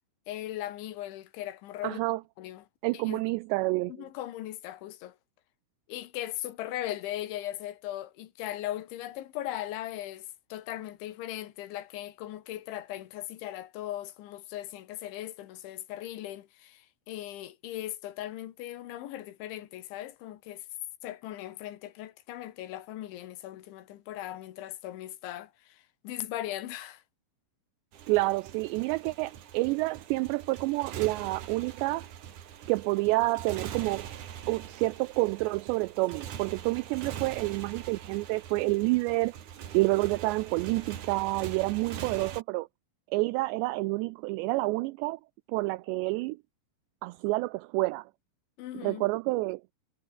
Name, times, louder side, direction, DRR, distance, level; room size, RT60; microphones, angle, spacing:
voice 1, 0.3-2.0 2.4-2.7 2.9-3.2 3.9-5.2 5.9-20.6 21.0-27.0 48.6-49.1, left 13 dB, 75° left, 3.9 m, -38 dB
voice 2, 1.8-2.2 2.8-3.9 28.1-32.1 32.7-34.1 34.5-39.3 39.7-42.7 43.1-45.2 45.5-46.4 47.0-48.1 48.8-49.6, right 22 dB, 85° right, 2.5 m, -28 dB
Motorcycle, 27.9-42.4, right 9 dB, 55° right, 2.7 m, -43 dB
omnidirectional pair, 5.5 m